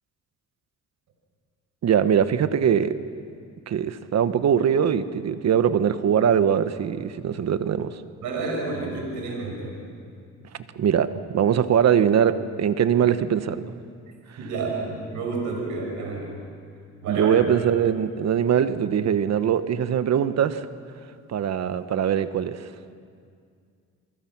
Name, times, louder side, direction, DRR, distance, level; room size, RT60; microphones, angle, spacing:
voice 1, 1.8-3.0 3.7-8.0 10.7-13.6 17.1-20.7 21.3-22.6, right 8 dB, 60° right, 11 dB, 1.3 m, -22 dB
voice 2, 8.2-9.7 14.4-16.3 17.0-17.4, right 3 dB, 80° right, 0 dB, 6.2 m, -30 dB
28.5 x 23.5 x 6.1 m, 2.2 s
cardioid pair, 90°, 30 cm